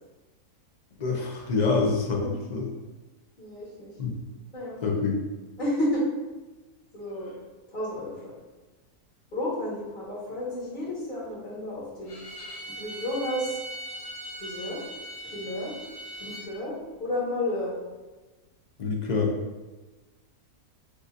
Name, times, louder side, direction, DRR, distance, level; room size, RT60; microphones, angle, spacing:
voice 1, 1.0-2.7 4.0-4.1 4.8-5.2 18.8-19.3, left 4 dB, 55° left, -2 dB, 0.4 m, -26 dB
voice 2, 3.4-3.9 4.5-4.8 5.6-6.0 6.9-7.3 7.7-8.1 9.3-12.2 12.7-13.6 14.4-14.8 15.3-15.7 16.2-17.7, left 1 dB, 35° left, -6 dB, 1.4 m, -31 dB
Bowed string instrument, 12.0-16.5, right 1 dB, 75° left, 1.8 m, -40 dB
6.4 x 2.6 x 2.4 m, 1.2 s
omnidirectional pair, 1.6 m